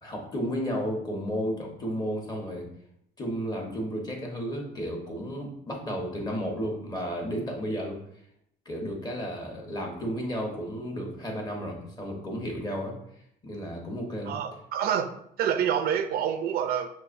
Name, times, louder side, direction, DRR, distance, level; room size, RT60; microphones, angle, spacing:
voice 1, 0.0-2.7 3.2-8.0 8.6-12.9 13.4-14.4, equal, 25° left, 0 dB, 1.1 m, -33 dB
voice 2, 14.3-16.9, right 8 dB, 65° right, 9 dB, 0.4 m, -27 dB
5.8 x 2.6 x 2.6 m, 0.72 s
cardioid pair, 110°, 17 cm